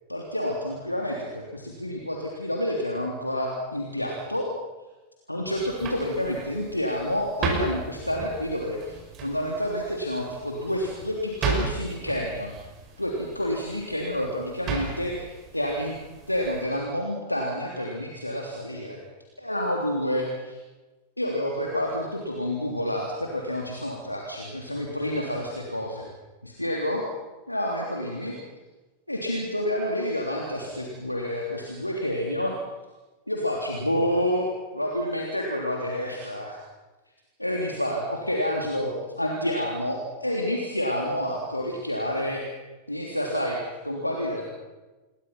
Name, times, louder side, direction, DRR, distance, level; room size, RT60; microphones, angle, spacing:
voice 1, 0.1-4.5 5.3-12.5 13.0-15.3 15.5-16.0 16.3-19.0 19.4-20.6 21.2-26.1 26.4-27.0 27.5-28.4 29.1-32.6 33.3-34.5 34.7-36.6 37.4-42.4 42.9-44.4, equal, 85° left, 0 dB, 3.3 m, -29 dB
sound 1, 5.5-16.6, right 4 dB, 35° right, 6.2 m, -35 dB
28.0 x 22.5 x 5.9 m, 1.2 s
figure-of-eight pair, 90°, 0 cm